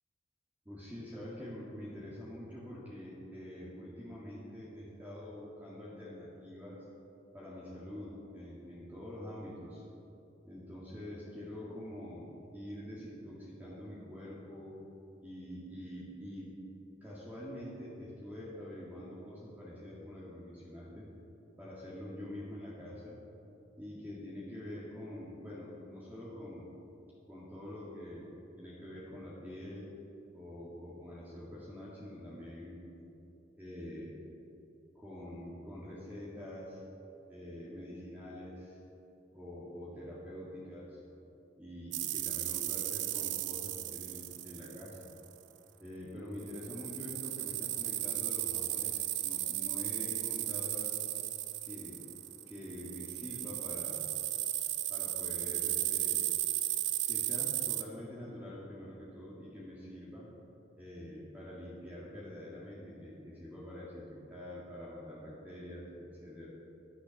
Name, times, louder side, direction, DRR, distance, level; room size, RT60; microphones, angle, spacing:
voice 1, 0.7-6.8 7.3-9.8 10.4-14.8 15.2-16.6 17.0-21.1 21.6-23.2 23.8-26.7 27.3-28.3 28.6-29.9 30.3-33.0 33.6-34.2 35.0-36.8 37.3-38.8 39.3-41.0 41.6-45.1 45.8-51.1 51.6-52.0 52.5-54.1 54.9-56.3 57.1-60.3 60.8-66.5, left 1 dB, 10° right, -7 dB, 2.0 m, -46 dB
sound 1, 41.9-45.3 46.4-57.8, right 14 dB, 70° right, 0.6 m, -35 dB
11.5 x 10.0 x 6.4 m, 2.9 s
head